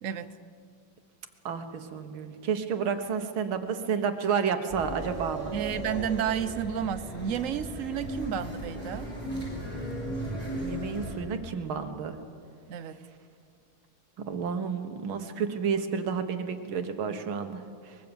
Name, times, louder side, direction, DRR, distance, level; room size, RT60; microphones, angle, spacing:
voice 1, 1.5-5.5 10.6-12.2 14.3-18.0, right 6 dB, 80° right, 7 dB, 2.2 m, -31 dB
sound 1, 4.7-11.1, right 1 dB, 10° right, 7.1 m, -36 dB
voice 2, 5.5-9.1 12.7-13.0, right 9 dB, 55° right, 12 dB, 0.9 m, -31 dB
23.5 x 21.5 x 7.1 m, 2.3 s
omnidirectional pair, 2.3 m